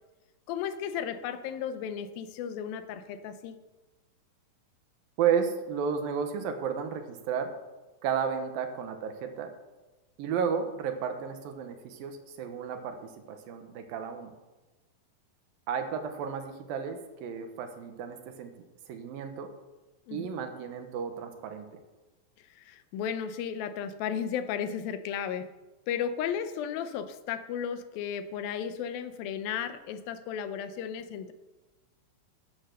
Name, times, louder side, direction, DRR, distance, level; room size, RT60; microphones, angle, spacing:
voice 1, 0.5-3.6 20.1-20.3 22.5-25.5 25.9-31.3, left 8 dB, 80° left, 11 dB, 2.5 m, -34 dB
voice 2, 5.2-7.5 8.0-9.5 10.2-14.3 15.7-18.5 18.9-19.5 20.1-21.8, right 7 dB, 75° right, 6 dB, 2.9 m, -32 dB
12.0 x 9.1 x 6.6 m, 1.1 s
omnidirectional pair, 4.2 m